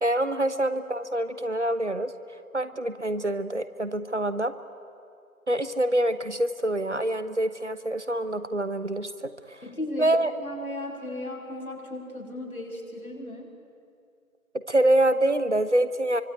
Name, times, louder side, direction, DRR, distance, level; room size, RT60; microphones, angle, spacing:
voice 1, 0.0-2.1 2.5-4.5 5.5-9.6 10.0-10.3 14.7-16.2, right 1 dB, 50° right, 12 dB, 1.2 m, -25 dB
voice 2, 9.6-13.5, left 1 dB, 70° left, 1 dB, 6.5 m, -36 dB
25.0 x 24.5 x 9.2 m, 2.4 s
figure-of-eight pair, 175°, 43 cm